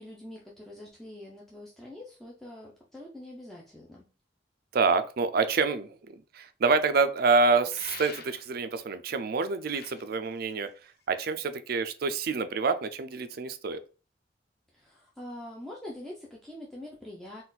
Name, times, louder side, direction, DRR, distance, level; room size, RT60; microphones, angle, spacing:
voice 1, 0.0-4.1 14.7-17.4, left 1 dB, ahead, -4 dB, 0.6 m, -44 dB
voice 2, 4.7-10.7 11.1-13.8, right 4 dB, 60° right, 10 dB, 0.5 m, -27 dB
sound 1, 7.7-8.7 9.5-11.2, left 5 dB, 60° left, 0.7 m, -45 dB
4.2 x 2.5 x 3.9 m, 0.35 s
head